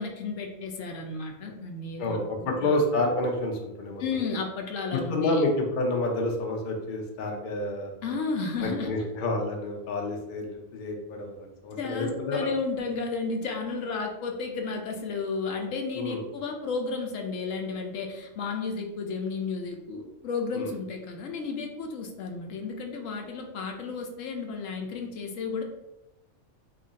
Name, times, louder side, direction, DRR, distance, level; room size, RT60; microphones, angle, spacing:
voice 1, 0.0-2.8 4.0-5.5 8.0-8.9 11.8-25.6, left 4 dB, 75° left, 2 dB, 1.0 m, -33 dB
voice 2, 2.0-4.0 4.9-7.9 8.6-12.4 16.0-16.2 20.5-20.7, left 2 dB, 50° left, 1 dB, 0.6 m, -29 dB
3.0 x 2.5 x 3.9 m, 0.91 s
omnidirectional pair, 1.4 m